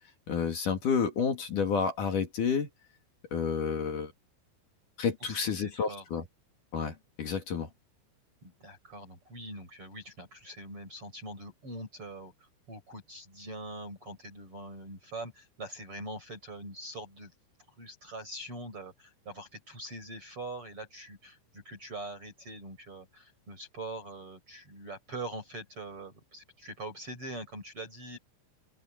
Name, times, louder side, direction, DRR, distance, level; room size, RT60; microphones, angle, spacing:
voice 1, 0.3-2.7 3.3-4.1 5.0-6.2 6.7-7.7, left 6 dB, 50° left, 3.1 m, -30 dB
voice 2, 5.2-6.2 8.4-17.3 17.8-28.2, right 2 dB, 25° right, 6.7 m, -43 dB
open air
omnidirectional pair, 5.8 m